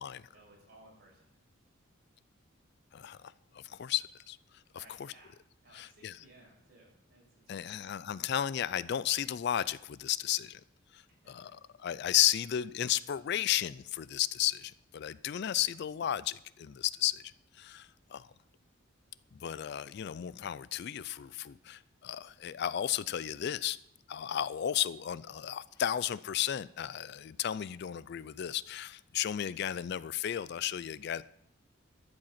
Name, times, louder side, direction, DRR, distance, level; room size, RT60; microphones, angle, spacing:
voice 1, 0.3-1.3 4.7-5.3 5.6-7.8 11.2-11.5 29.5-29.6, right 1 dB, 50° right, -2 dB, 6.0 m, -60 dB
voice 2, 3.5-4.4 5.7-6.1 7.5-10.6 10.9-11.0 11.3-17.2 17.6-18.3 19.4-23.8 24.1-31.2, left 11 dB, 50° left, 18 dB, 0.3 m, -33 dB
13.0 x 7.9 x 5.7 m, 0.79 s
head